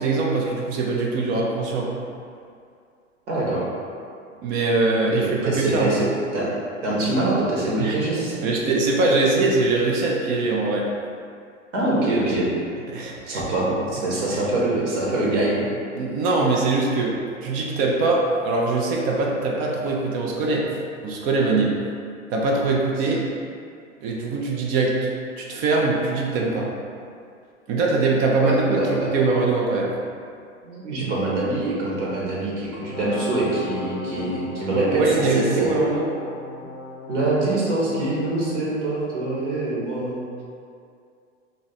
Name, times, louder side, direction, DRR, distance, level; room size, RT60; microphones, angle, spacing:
voice 1, 0.0-1.9 4.4-6.0 7.8-8.0 8.4-10.9 12.9-13.4 14.3-14.4 16.0-20.7 21.0-21.8 22.3-23.2 24.0-25.1 25.4-26.7 27.7-29.9 34.7-36.1, right 3 dB, 25° right, -2 dB, 0.3 m, -22 dB
voice 2, 3.3-3.6 5.2-6.5 6.8-8.4 11.7-12.5 13.2-15.7 28.4-29.1 30.6-35.7 37.1-40.4, right 2 dB, 65° right, -6 dB, 1.2 m, -24 dB
Brass instrument, 32.8-38.6, left 3 dB, 70° left, 0.6 m, -37 dB
3.0 x 2.5 x 4.1 m, 2.4 s
figure-of-eight pair, 95°, 39 cm